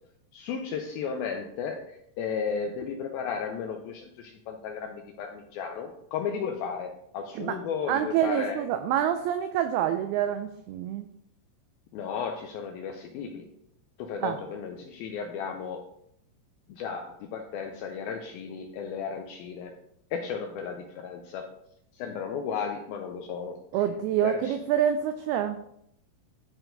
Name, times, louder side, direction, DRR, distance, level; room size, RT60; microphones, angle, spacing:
voice 1, 0.3-8.6 11.9-13.5 14.0-15.9 16.7-19.7 20.1-21.5 21.9-23.6 24.2-24.6, left 6 dB, 90° left, 4 dB, 2.1 m, -34 dB
voice 2, 7.9-11.1 14.2-14.4 23.7-25.6, right 10 dB, 90° right, 8 dB, 2.2 m, -27 dB
12.0 x 4.5 x 3.9 m, 0.76 s
omnidirectional pair, 4.9 m